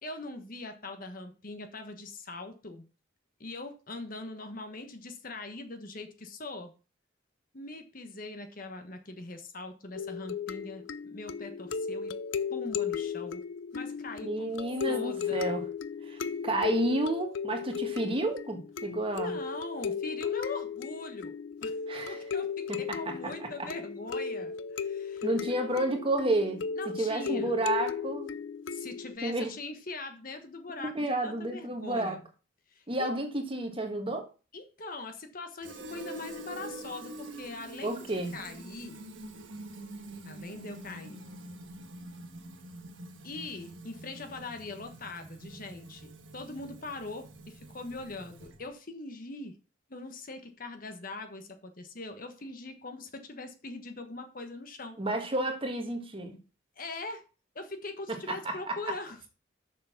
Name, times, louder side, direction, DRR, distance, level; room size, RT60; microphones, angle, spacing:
voice 1, 0.0-2.8 3.4-6.7 7.5-12.1 12.5-13.4 13.7-14.5 14.9-15.5 19.0-21.3 21.6-21.8 22.0-25.3 26.8-27.6 28.7-32.2 32.7-33.2 34.5-39.0 40.2-41.2 43.2-49.6 49.9-55.0 56.8-57.2 57.5-59.2, left 2 dB, 45° left, 1.3 m, -42 dB
sound 1, 10.0-29.2, left 6 dB, 70° left, 0.5 m, -35 dB
voice 2, 14.2-15.7 16.1-19.3 21.9-22.2 22.9-23.5 25.2-26.6 26.9-28.3 29.2-29.5 30.8-32.2 32.9-34.3 37.8-38.3 55.0-56.4 58.3-58.9, right 1 dB, 25° right, 1.5 m, -31 dB
Fill (with liquid), 35.6-48.7, right 2 dB, 70° right, 1.5 m, -46 dB
6.8 x 6.2 x 5.8 m
head